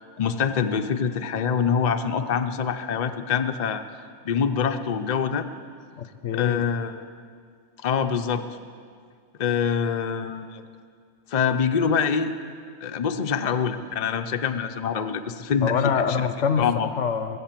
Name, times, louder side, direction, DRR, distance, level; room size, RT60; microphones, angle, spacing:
voice 1, 0.2-3.8 4.2-5.5 6.3-7.0 7.8-8.4 9.4-10.6 11.3-12.3 12.8-16.3 16.6-16.9, left 7 dB, 45° left, 7 dB, 0.7 m, -25 dB
voice 2, 6.0-6.7 15.6-16.7 17.0-17.4, left 6 dB, 90° left, 10 dB, 1.2 m, -25 dB
22.0 x 8.0 x 7.4 m, 2.1 s
omnidirectional pair, 1.2 m